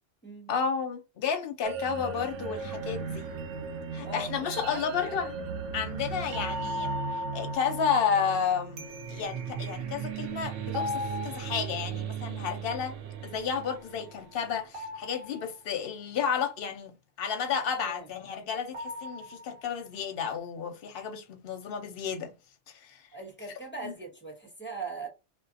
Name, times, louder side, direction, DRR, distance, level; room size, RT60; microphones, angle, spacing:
voice 1, 0.5-3.3 3.9-5.5 5.7-13.0 13.2-22.3 22.8-23.0 23.8-23.9, left 7 dB, 60° left, 0.8 m, -32 dB
sound 1, 1.6-14.6, right 4 dB, 85° right, 0.9 m, -36 dB
sound 2, 10.7-11.9 14.7-15.8 18.7-19.9, left 4 dB, 50° right, 1.2 m, -38 dB
voice 2, 23.1-25.1, right 3 dB, 10° left, 0.8 m, -40 dB
2.4 x 2.4 x 2.5 m
omnidirectional pair, 1.2 m